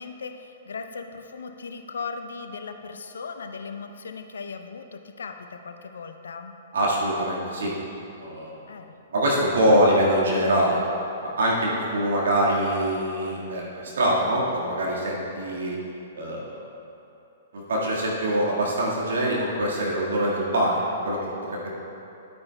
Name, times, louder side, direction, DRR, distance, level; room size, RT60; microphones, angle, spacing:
voice 1, 0.0-6.5 8.7-8.9, left 5 dB, 70° left, 6 dB, 0.5 m, -38 dB
voice 2, 6.7-7.7 8.1-8.5 9.1-10.8 11.2-15.8 16.1-16.6 17.5-21.7, right 1 dB, 70° right, -4 dB, 1.7 m, -24 dB
11.5 x 9.4 x 2.3 m, 2.8 s
figure-of-eight pair, 115°, 0 cm